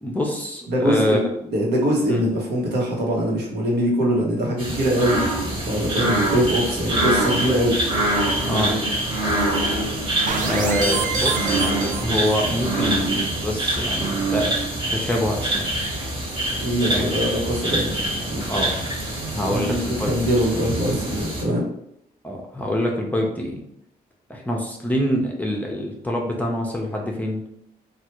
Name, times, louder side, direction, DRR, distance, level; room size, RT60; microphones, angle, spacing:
voice 1, 0.0-1.2 2.1-2.2 8.5-8.8 10.4-14.6 14.9-15.7 16.9-17.1 18.5-18.8 19.3-20.1 22.2-23.6 24.3-27.4, left 1 dB, 10° left, -1 dB, 0.5 m, -25 dB
voice 2, 0.7-7.8 16.6-18.5 19.4-21.6, equal, 80° right, -2 dB, 1.0 m, -23 dB
sound 1, 4.6-21.4, right 1 dB, 30° right, 1.2 m, -25 dB
sound 2, 10.3-12.7, right 5 dB, 50° right, 0.5 m, -28 dB
3.2 x 2.3 x 2.9 m, 0.75 s
cardioid pair, 90°, 17 cm